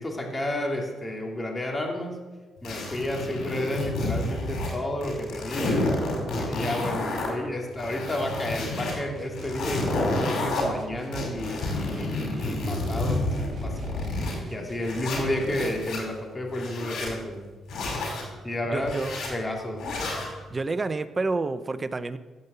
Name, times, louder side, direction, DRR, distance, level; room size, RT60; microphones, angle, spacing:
voice 1, 0.0-2.2 2.6-5.7 6.3-14.0 14.5-17.5 18.4-19.0 19.3-19.9, left 1 dB, 20° left, 1 dB, 2.7 m, -31 dB
sound 1, 2.6-4.7 5.0-7.3 7.7-8.9 9.3-10.6 11.1-14.4 14.8-16.0 16.5-17.1 17.7-18.2 18.8-19.3 19.8-20.3, left 2 dB, 75° left, 5.2 m, -30 dB
sound 2, 8.2-15.7, right 3 dB, 50° right, 2.6 m, -45 dB
voice 2, 18.7-19.3 20.5-22.2, right 3 dB, 25° right, 13 dB, 0.7 m, -29 dB
16.0 x 5.4 x 8.1 m, 1.3 s
cardioid pair, 90°, 0 cm